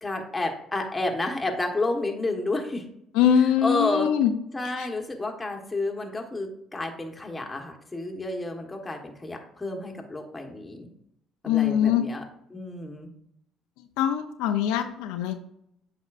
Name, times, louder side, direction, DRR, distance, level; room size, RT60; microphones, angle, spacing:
voice 1, 0.0-2.9 3.3-4.1 4.5-10.9 11.4-12.2 12.5-13.1, left 2 dB, 15° left, 2 dB, 1.3 m, -30 dB
voice 2, 3.2-4.3 11.5-12.0 14.0-15.3, left 9 dB, 90° left, 6 dB, 0.6 m, -22 dB
8.2 x 5.3 x 2.5 m, 0.73 s
supercardioid pair, 85°, 0 cm